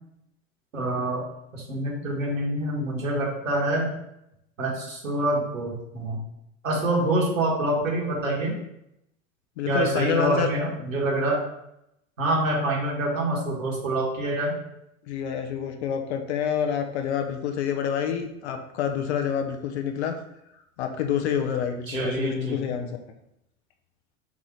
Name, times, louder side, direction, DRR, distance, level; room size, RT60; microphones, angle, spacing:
voice 1, 0.7-1.2 1.5-3.9 4.6-6.2 6.6-8.5 9.7-11.4 12.2-14.6 21.9-22.6, right 1 dB, 80° right, -3 dB, 1.5 m, -26 dB
voice 2, 9.6-10.5 15.1-20.1 20.8-22.9, left 8 dB, 55° left, 5 dB, 0.7 m, -27 dB
4.7 x 2.7 x 4.2 m, 0.81 s
figure-of-eight pair, 80°, 40 cm